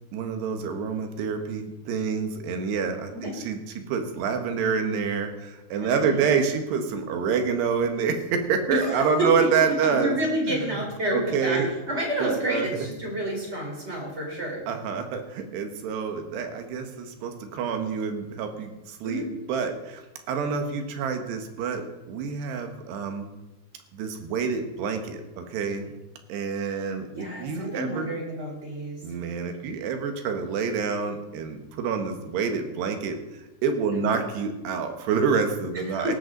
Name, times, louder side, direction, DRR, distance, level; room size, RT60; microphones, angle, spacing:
voice 1, 0.1-3.6 3.9-10.2 10.5-10.8 11.1-11.7 12.2-12.7 14.7-23.3 23.9-25.9 26.3-28.1 29.0-33.2 33.6-36.1, right 6 dB, 80° right, 6 dB, 3.5 m, -27 dB
voice 2, 5.8-6.2 8.7-11.6 11.9-14.6 19.0-19.3 26.6-26.8 27.1-29.0 33.9-34.2 35.9-36.1, right 1 dB, 15° right, -1 dB, 4.0 m, -29 dB
18.0 x 13.5 x 4.0 m, 1.0 s
omnidirectional pair, 4.8 m